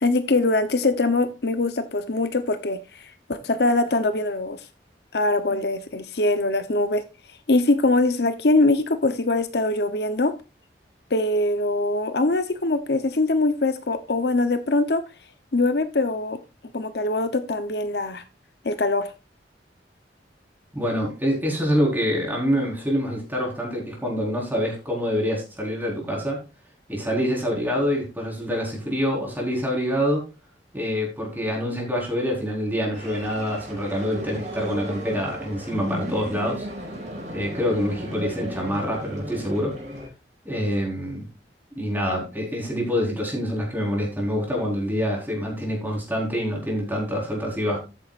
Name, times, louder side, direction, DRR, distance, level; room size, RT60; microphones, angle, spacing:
voice 1, 0.0-4.6 5.1-7.0 7.5-10.3 11.1-15.0 15.5-16.4 16.7-18.2 18.6-19.1, left 2 dB, 65° left, 10 dB, 0.9 m, -22 dB
voice 2, 20.7-26.4 26.9-30.2 30.7-36.7 37.3-39.7 40.4-41.2 41.7-47.8, equal, 10° right, -2 dB, 4.5 m, -26 dB
sound 1, 32.9-40.1, equal, 45° right, 5.5 m, -35 dB
13.0 x 9.4 x 2.5 m, 0.29 s
head